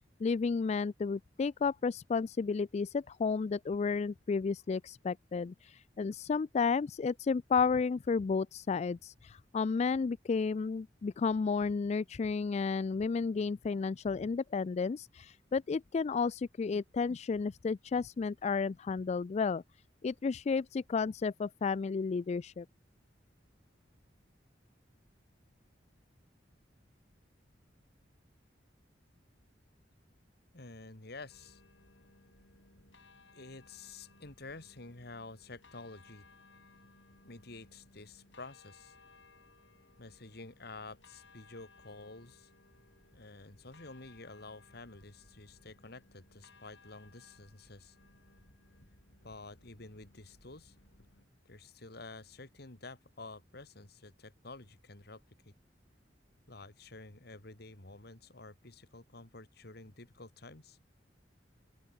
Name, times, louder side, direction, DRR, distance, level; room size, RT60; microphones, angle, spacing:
voice 1, 0.2-19.6 20.0-22.7, left 5 dB, 40° left, 0.3 m, -32 dB
voice 2, 30.5-31.6 33.3-36.2 37.2-39.0 40.0-42.5 43.1-48.0 49.2-50.7 51.5-55.5 56.5-60.8, left 3 dB, 60° left, 2.6 m, -50 dB
sound 1, 31.3-51.3, left 3 dB, 85° left, 4.8 m, -62 dB
open air
head